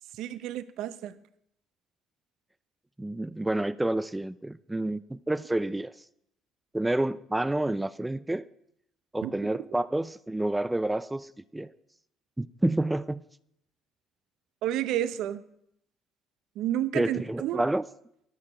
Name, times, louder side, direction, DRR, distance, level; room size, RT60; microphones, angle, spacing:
voice 1, 0.2-1.2 9.2-9.3 14.6-15.4 16.6-17.6, right 12 dB, 75° right, 0.6 m, -30 dB
voice 2, 3.0-5.9 6.7-8.4 9.1-11.7 12.4-13.2 16.9-17.8, right 1 dB, 10° right, 0.3 m, -29 dB
11.5 x 6.6 x 6.1 m
cardioid pair, 95°, 0 cm